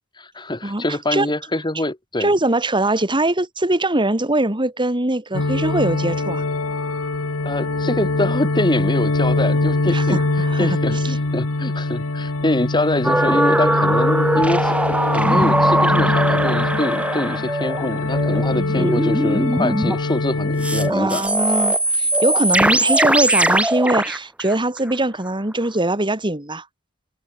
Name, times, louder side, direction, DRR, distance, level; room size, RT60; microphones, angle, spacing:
voice 1, 0.2-2.3 7.4-10.2 10.6-14.8 15.1-21.2, left 1 dB, 20° left, 2.2 m, -24 dB
voice 2, 2.2-6.4 9.9-11.2 18.5-18.9 20.9-26.7, right 2 dB, 20° right, 2.8 m, -22 dB
sound 1, 5.3-20.9, left 2 dB, 75° left, 1.4 m, -23 dB
sound 2, 13.0-20.0 20.6-25.2 25.5-25.6, right 1 dB, 5° right, 2.1 m, -20 dB
head